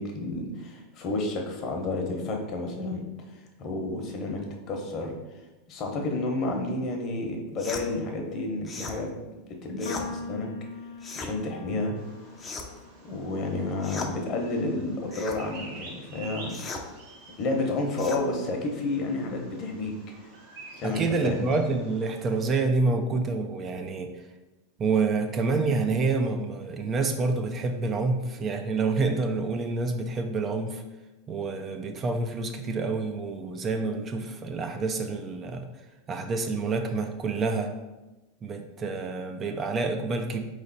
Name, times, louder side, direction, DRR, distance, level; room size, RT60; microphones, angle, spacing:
voice 1, 0.0-3.0 3.6-5.1 5.7-9.1 9.5-10.5 11.1-12.0 13.0-16.8 17.4-20.0 20.8-21.4, left 2 dB, 45° left, 2 dB, 1.0 m, -30 dB
sound 1, 7.6-7.9 8.6-9.0 9.8-10.1 11.0-11.3 12.4-12.8 13.8-14.1 15.1-15.4 16.5-16.9 18.0-18.2, left 4 dB, 20° left, 0.6 m, -37 dB
sound 2, 9.8-16.2, left 4 dB, 90° left, 0.4 m, -43 dB
Bird vocalization bird call bird song, 12.0-22.4, right 2 dB, 75° right, 1.3 m, -48 dB
voice 2, 20.8-24.1 24.8-30.8 31.3-35.7 36.1-37.7 38.4-40.4, right 3 dB, 30° right, 5 dB, 0.4 m, -28 dB
3.9 x 3.2 x 4.0 m, 1.1 s
hypercardioid pair, 115°, 0 cm